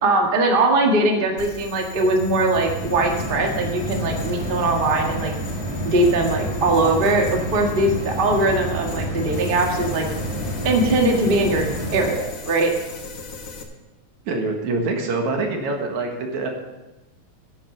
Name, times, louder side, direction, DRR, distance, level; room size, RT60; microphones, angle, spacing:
voice 1, 0.0-5.3 5.8-10.1 10.6-11.6 11.9-12.7, right 2 dB, 25° right, 2 dB, 1.1 m, -20 dB
sound 1, 1.0-12.1, right 1 dB, 15° left, 1.9 m, -29 dB
sound 2, 1.4-13.6, left 3 dB, 45° left, 1.1 m, -39 dB
voice 2, 14.3-16.5, right 3 dB, 80° right, 2 dB, 3.0 m, -25 dB
10.5 x 9.4 x 6.8 m, 1.1 s
omnidirectional pair, 3.3 m